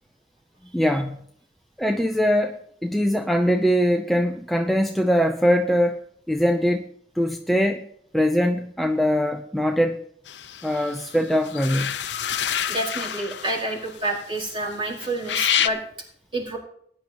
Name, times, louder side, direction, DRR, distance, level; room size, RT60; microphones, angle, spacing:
voice 1, 0.7-1.2 1.8-6.0 6.3-6.9 7.2-7.9 8.1-10.0 10.6-11.9, equal, ahead, 3 dB, 0.7 m, -22 dB
sound 1, 10.3-14.7 15.0-15.7, left 9 dB, 85° left, 0.7 m, -28 dB
voice 2, 12.7-15.8 16.3-16.6, right 1 dB, 30° right, -3 dB, 5.2 m, -28 dB
19.5 x 10.5 x 3.0 m, 0.65 s
head